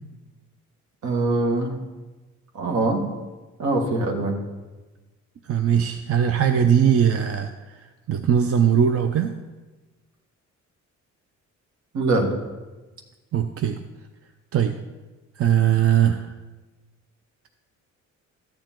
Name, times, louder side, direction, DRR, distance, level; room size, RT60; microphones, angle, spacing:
voice 1, 1.0-1.8 2.5-3.1 3.6-4.4 11.9-12.4, right 2 dB, 70° right, 3 dB, 1.9 m, -23 dB
voice 2, 5.5-7.8 8.1-9.3 13.3-13.8 14.5-14.8 15.4-16.3, right 8 dB, 50° right, 8 dB, 0.6 m, -20 dB
13.0 x 7.4 x 4.5 m, 1.2 s
cardioid pair, 90°, 30 cm